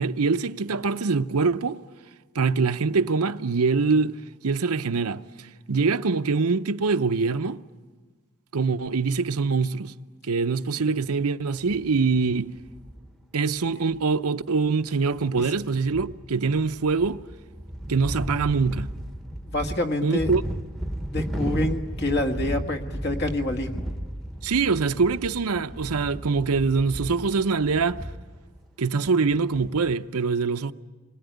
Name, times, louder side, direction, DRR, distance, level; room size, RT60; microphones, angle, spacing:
voice 1, 0.0-1.8 2.3-4.2 4.4-5.2 5.7-7.6 8.5-9.9 10.3-12.5 13.3-17.2 17.9-18.9 20.0-20.4 24.4-28.0 28.8-30.7, right 4 dB, 80° right, 0.7 m, -24 dB
sound 1, 11.6-13.1 13.6-13.7 13.9-14.0 14.8-14.9 15.0-28.6 29.2-30.0, right 1 dB, ahead, 1.0 m, -35 dB
voice 2, 19.4-20.3 21.1-23.9, left 1 dB, 50° left, 1.9 m, -27 dB
27.0 x 21.0 x 9.3 m
head